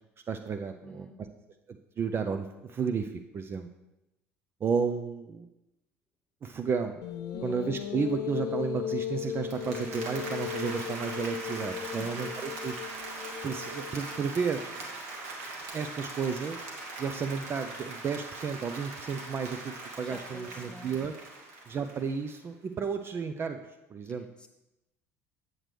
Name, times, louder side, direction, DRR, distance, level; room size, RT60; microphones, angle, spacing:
voice 1, 0.3-1.1 1.7-3.7 4.6-5.5 6.4-7.0 7.4-12.8 13.4-14.7 15.7-16.6 17.0-21.1 21.7-23.6 23.9-24.3, right 6 dB, 30° right, 6 dB, 0.4 m, -32 dB
voice 2, 0.8-1.3 7.3-7.6 11.9-12.2 20.0-20.9 24.2-24.5, left 1 dB, 10° left, 4 dB, 1.0 m, -47 dB
sound 1, 7.0-14.4, left 9 dB, 50° left, 0.4 m, -37 dB
Applause, 9.3-22.4, right 2 dB, 70° right, 1.2 m, -41 dB
7.7 x 7.3 x 3.3 m, 0.96 s
figure-of-eight pair, 60°, 8 cm